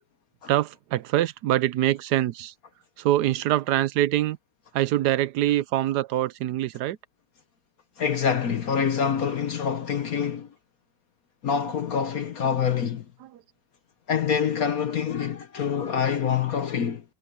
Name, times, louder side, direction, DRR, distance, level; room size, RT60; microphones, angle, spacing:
voice 1, 0.5-2.5 3.0-4.4 4.7-7.0 11.7-11.8 13.2-13.4, right 14 dB, 80° right, 0.9 m, -24 dB
voice 2, 8.0-10.5 11.4-13.0 14.1-17.0, left 7 dB, 55° left, 1.1 m, -26 dB
omnidirectional pair, 2.3 m